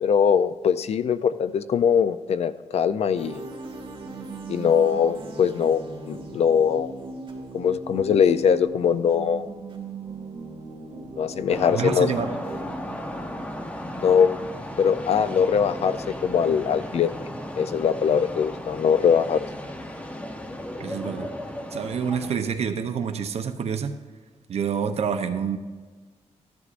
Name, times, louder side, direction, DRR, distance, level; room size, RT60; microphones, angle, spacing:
voice 1, 0.0-3.4 4.5-6.9 7.5-9.5 11.2-12.1 14.0-14.4 14.8-17.1 17.6-19.4, left 7 dB, 60° left, 13 dB, 0.5 m, -22 dB
sound 1, 3.1-12.6, right 3 dB, 45° right, 2.2 m, -38 dB
sound 2, 11.5-22.4, left 1 dB, 10° left, 0.8 m, -35 dB
voice 2, 11.7-12.4 20.8-21.3 21.7-24.0 24.5-25.6, right 7 dB, 60° right, 7 dB, 0.7 m, -27 dB
14.5 x 11.0 x 2.5 m, 1.4 s
wide cardioid pair, 155°, 12 cm